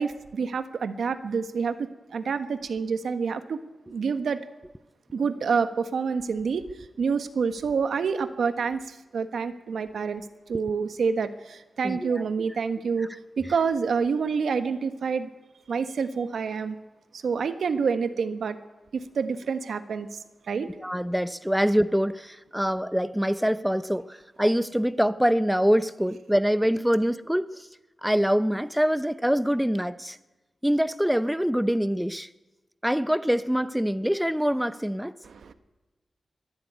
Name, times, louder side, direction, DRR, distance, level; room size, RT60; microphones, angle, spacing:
voice 1, 0.0-3.6 3.9-4.4 5.1-6.7 7.0-10.2 10.5-15.3 15.7-16.8 17.1-18.6 18.9-20.2 20.5-20.7 35.2-35.5, right 5 dB, 85° right, 10 dB, 1.3 m, -28 dB
voice 2, 11.8-12.5 20.8-27.7 28.0-30.2 30.6-32.3 32.8-35.1, equal, 5° right, 13 dB, 0.7 m, -25 dB
22.5 x 12.5 x 9.5 m, 1.1 s
wide cardioid pair, 90°, 0 cm